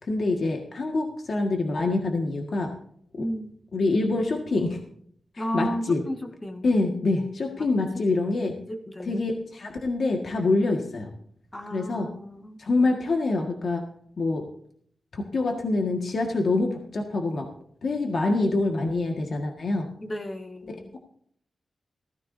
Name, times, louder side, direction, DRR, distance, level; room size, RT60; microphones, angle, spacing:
voice 1, 0.0-2.7 3.1-3.3 3.7-4.8 5.3-6.0 6.6-8.6 9.1-11.1 11.7-12.1 12.6-13.8 14.2-14.4 15.1-17.5 17.8-19.9, left 2 dB, 60° left, 2 dB, 1.7 m, -25 dB
voice 2, 3.2-3.5 5.4-6.7 7.6-7.7 7.9-8.0 8.7-9.3 11.5-12.6 20.0-20.9, equal, 20° left, 5 dB, 1.7 m, -33 dB
16.0 x 14.5 x 2.7 m, 0.63 s
wide cardioid pair, 90°, 0 cm